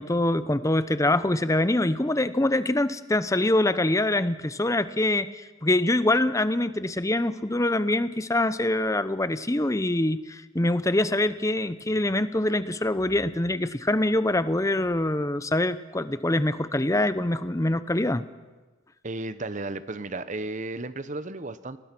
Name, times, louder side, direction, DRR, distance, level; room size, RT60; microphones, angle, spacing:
voice 1, 0.0-18.3, left 1 dB, 15° left, 14 dB, 0.7 m, -24 dB
voice 2, 19.0-21.8, right 2 dB, 35° right, 13 dB, 0.9 m, -34 dB
28.5 x 19.5 x 6.1 m, 1.2 s
head